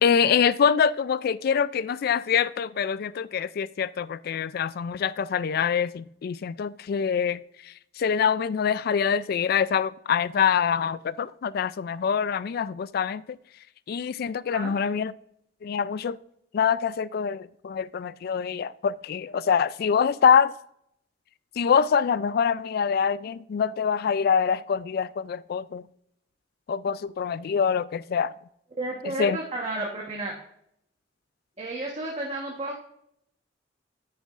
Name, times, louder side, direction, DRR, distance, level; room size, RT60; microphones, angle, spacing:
voice 1, 0.0-13.4 13.9-15.1 15.6-16.2 16.5-20.5 21.6-25.8 26.7-28.3 29.0-29.4, left 7 dB, 55° left, 0.3 m, -25 dB
voice 2, 28.8-30.3 31.6-32.8, right 2 dB, 35° right, 1.2 m, -32 dB
9.6 x 9.3 x 2.5 m
head